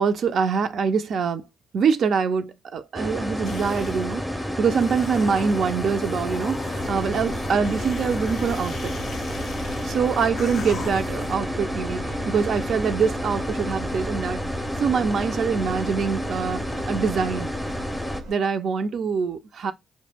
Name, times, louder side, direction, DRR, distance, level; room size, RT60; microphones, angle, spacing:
voice 1, 0.0-1.4 1.7-4.2 4.6-8.9 9.8-14.4 14.8-17.5 18.3-19.7, right 6 dB, 65° right, 0.3 m, -24 dB
sound 1, 2.9-18.2, equal, 5° left, 0.4 m, -30 dB
sound 2, 3.4-4.1 4.6-11.3, left 5 dB, 65° left, 0.4 m, -39 dB
Engine, 6.8-18.3, right 2 dB, 85° right, 1.1 m, -37 dB
2.3 x 2.1 x 3.2 m
supercardioid pair, 50°, 0 cm